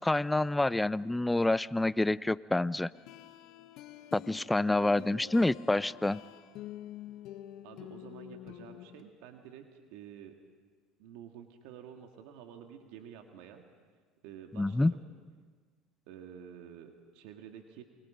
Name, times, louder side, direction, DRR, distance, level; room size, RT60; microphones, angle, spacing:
voice 1, 0.0-2.9 4.1-6.2 14.6-14.9, left 2 dB, 10° left, 18 dB, 0.6 m, -27 dB
sound 1, 2.9-9.0, left 13 dB, 60° left, 1.2 m, -48 dB
voice 2, 4.5-5.6 7.6-10.4 11.0-13.6 14.2-15.0 16.1-17.8, right 9 dB, 70° right, 4 dB, 2.1 m, -50 dB
28.5 x 22.5 x 5.2 m, 1.5 s
supercardioid pair, 90°, 0 cm